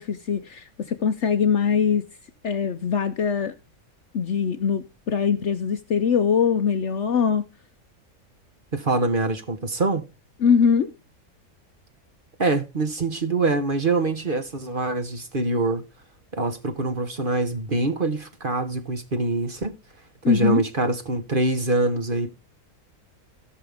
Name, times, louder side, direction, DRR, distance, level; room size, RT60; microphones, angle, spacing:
voice 1, 0.0-2.1 2.4-3.5 4.1-7.4 10.4-10.9 20.2-20.6, left 6 dB, 60° left, 0.9 m, -22 dB
voice 2, 8.7-10.1 12.4-15.8 16.3-19.7 20.3-22.3, right 2 dB, 35° right, 1.2 m, -24 dB
17.0 x 6.0 x 3.5 m
omnidirectional pair, 1.6 m